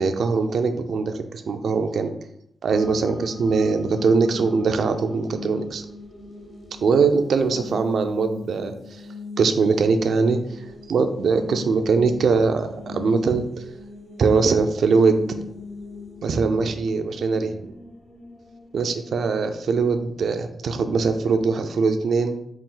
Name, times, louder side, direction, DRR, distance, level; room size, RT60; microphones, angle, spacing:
voice 1, 0.0-2.1 2.6-5.8 6.8-8.7 9.4-10.4 10.9-13.4 14.2-15.2 16.2-17.6 18.7-22.4, right 4 dB, 70° right, 7 dB, 0.4 m, -21 dB
sound 1, 2.7-19.3, left 3 dB, 45° left, 0.8 m, -40 dB
4.1 x 2.5 x 3.8 m, 0.75 s
wide cardioid pair, 130°, 0 cm